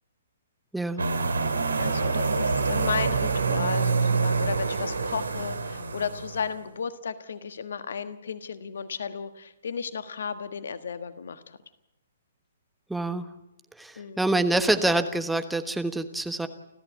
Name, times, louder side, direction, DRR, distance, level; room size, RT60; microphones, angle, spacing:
sound 1, 1.0-6.5, right 4 dB, 70° right, 2.5 m, -26 dB
voice 1, 1.8-11.6 13.9-14.3, left 6 dB, 60° left, 11 dB, 1.5 m, -34 dB
voice 2, 12.9-13.3 13.8-16.5, right 2 dB, 5° right, 9 dB, 1.2 m, -26 dB
29.5 x 14.0 x 8.3 m, 0.94 s
figure-of-eight pair, 125°, 0 cm